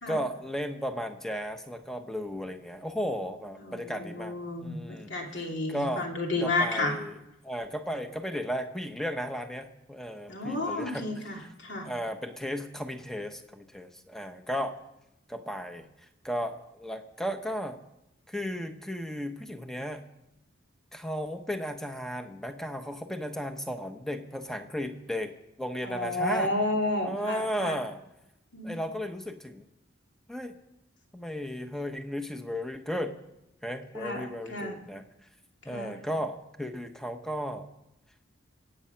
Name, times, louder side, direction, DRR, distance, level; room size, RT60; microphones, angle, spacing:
voice 1, 0.1-6.0 6.4-7.1 7.4-11.1 11.8-14.7 15.3-15.9 16.2-17.8 18.3-20.0 20.9-25.3 25.6-26.5 27.0-28.0 28.6-29.6 30.3-30.5 31.1-33.2 33.6-35.0 35.6-37.7, equal, ahead, 7 dB, 0.9 m, -35 dB
voice 2, 3.6-7.0 10.3-11.9 25.8-27.8 28.5-28.8 33.9-34.8 35.7-36.0, left 2 dB, 60° left, 1 dB, 2.7 m, -31 dB
24.5 x 8.7 x 5.7 m, 0.88 s
head